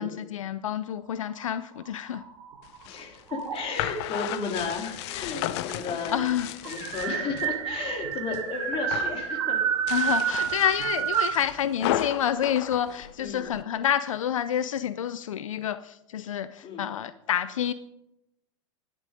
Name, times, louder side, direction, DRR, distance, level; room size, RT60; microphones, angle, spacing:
voice 1, 0.0-2.2 6.1-6.5 9.9-17.7, left 10 dB, 85° left, 14 dB, 0.5 m, -28 dB
sound 1, 1.3-2.8 3.3-3.9 4.9-5.0 5.3-5.4 5.7-11.4, right 8 dB, 70° right, 2.3 m, -29 dB
sound 2, 2.6-7.5 7.9-8.5 8.7-9.2 9.7-13.6, left 13 dB, 55° left, 0.8 m, -34 dB
voice 2, 2.9-6.2 6.6-9.6 13.2-13.5 16.6-16.9, left 4 dB, 35° left, 2 dB, 3.5 m, -33 dB
11.0 x 11.0 x 5.3 m, 0.88 s
hypercardioid pair, 105°, 17 cm